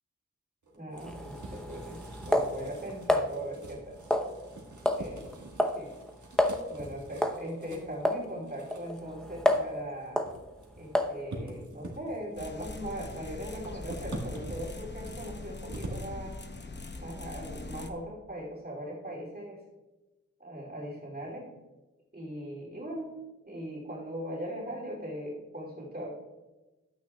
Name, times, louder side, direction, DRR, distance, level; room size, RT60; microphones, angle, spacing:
sound 1, 0.6-16.1, right 2 dB, 80° right, 1.6 m, -46 dB
voice 1, 0.7-4.0 5.0-5.2 5.8-5.9 6.7-10.2 10.8-16.4 17.0-19.6 20.4-21.5 22.1-23.2 23.5-26.1, equal, 30° right, -4 dB, 2.8 m, -39 dB
sound 2, 1.0-3.3 4.1-4.6 4.9-5.1 5.3-5.8 6.1-6.2 6.4-6.6 7.2-7.4 8.1-8.2 8.7-9.8 10.2-10.3 11.0-11.2, left 1 dB, ahead, 0.8 m, -28 dB
sound 3, 12.4-17.9, left 2 dB, 35° left, 0.8 m, -42 dB
12.0 x 8.7 x 2.3 m, 1.1 s
wide cardioid pair, 65°, 29 cm